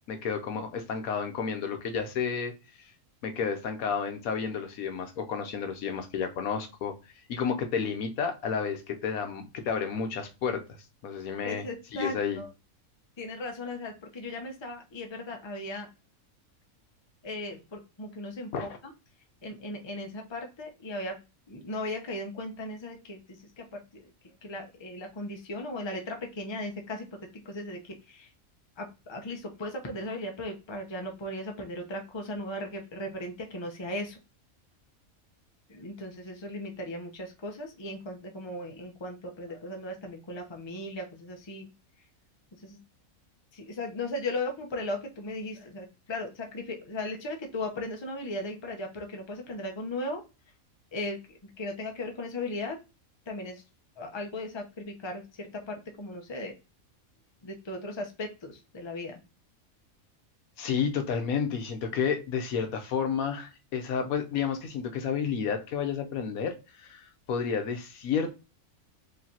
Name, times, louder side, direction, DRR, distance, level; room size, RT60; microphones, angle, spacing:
voice 1, 0.1-2.5 3.2-6.9 7.3-10.6 11.0-11.6 11.9-12.4 18.5-18.8 60.6-68.3, left 6 dB, 75° left, 1.2 m, -31 dB
voice 2, 11.4-12.5 13.2-15.9 17.2-18.7 19.4-21.2 21.5-24.0 24.4-28.3 28.8-34.2 35.7-41.7 42.6-42.8 43.5-50.2 50.9-52.8 53.3-53.6 54.0-56.5 57.4-59.2, left 1 dB, 25° left, 0.8 m, -37 dB
4.9 x 3.2 x 2.8 m
omnidirectional pair, 1.5 m